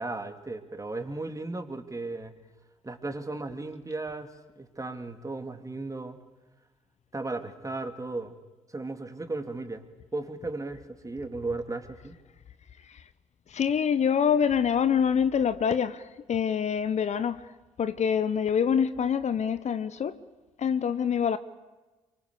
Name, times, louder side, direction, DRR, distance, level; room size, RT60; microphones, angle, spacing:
voice 1, 0.0-2.4 2.8-6.2 7.1-8.4 8.7-9.9 10.1-12.1, right 2 dB, 20° right, 2.8 m, -35 dB
voice 2, 13.5-17.5 17.8-20.2 20.6-21.4, left 7 dB, 50° left, 1.0 m, -25 dB
24.5 x 24.0 x 8.4 m
hypercardioid pair, 40°, 15 cm